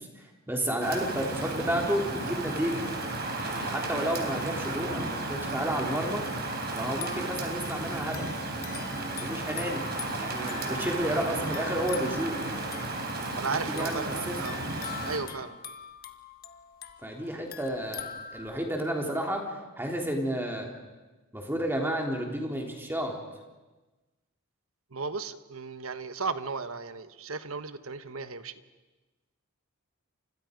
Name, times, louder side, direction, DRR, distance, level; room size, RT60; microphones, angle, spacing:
voice 1, 0.0-2.8 3.4-6.2 6.7-8.3 9.2-9.9 10.2-12.4 13.5-14.4 17.0-20.7 21.3-23.2, right 1 dB, 10° right, 1 dB, 3.4 m, -31 dB
Rain, 0.8-15.2, right 2 dB, 50° right, 4.2 m, -34 dB
sound 1, 6.9-18.8, left 8 dB, 45° left, 1.4 m, -44 dB
voice 2, 13.3-14.6 15.0-15.6 24.9-28.6, right 4 dB, 65° right, 11 dB, 1.2 m, -35 dB
30.0 x 26.5 x 5.3 m, 1.2 s
head